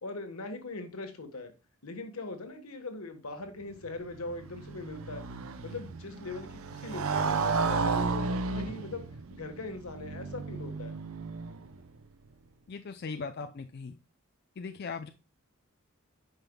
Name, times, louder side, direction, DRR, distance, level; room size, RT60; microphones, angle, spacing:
voice 1, 0.0-1.5 1.8-5.3 5.6-9.0 9.3-10.9 13.1-13.2, left 3 dB, 85° left, 1.4 m, -41 dB
Motorcycle, 3.8-11.9, right 4 dB, 70° right, 0.6 m, -33 dB
voice 2, 12.7-13.9 14.6-15.1, left 4 dB, 50° left, 0.5 m, -39 dB
8.9 x 5.6 x 2.3 m
head